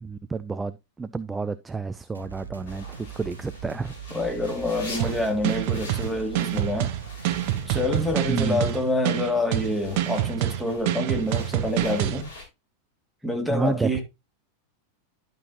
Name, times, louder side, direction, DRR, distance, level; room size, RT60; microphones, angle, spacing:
voice 1, 0.0-3.9 8.3-8.6 13.5-14.0, right 4 dB, 10° right, 0.4 m, -30 dB
sound 1, 2.1-8.3, right 7 dB, 80° right, 1.0 m, -41 dB
sound 2, 2.7-12.4, left 3 dB, 60° left, 4.6 m, -45 dB
voice 2, 4.1-6.9 7.7-12.3 13.2-14.0, left 1 dB, 5° left, 2.5 m, -27 dB
sound 3, 5.0-12.2, right 13 dB, 45° right, 0.7 m, -27 dB
11.5 x 6.2 x 2.8 m
figure-of-eight pair, 90°, 0 cm